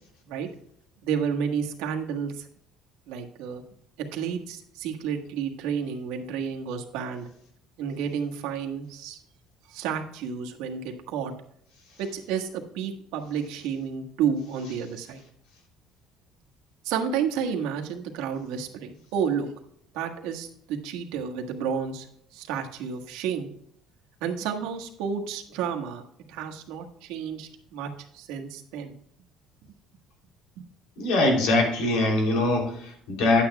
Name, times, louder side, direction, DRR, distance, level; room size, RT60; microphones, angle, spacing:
voice 1, 1.0-2.5 3.1-3.6 4.1-7.3 7.8-9.2 9.7-11.3 12.0-15.2 16.8-19.5 19.9-22.1 22.3-23.5 24.2-26.0 26.3-28.9 30.6-30.7, right 7 dB, 90° right, 2 dB, 1.5 m, -31 dB
voice 2, 31.0-33.4, left 2 dB, 90° left, 1 dB, 3.1 m, -23 dB
11.5 x 8.8 x 2.3 m, 0.70 s
cardioid pair, 170°, 0 cm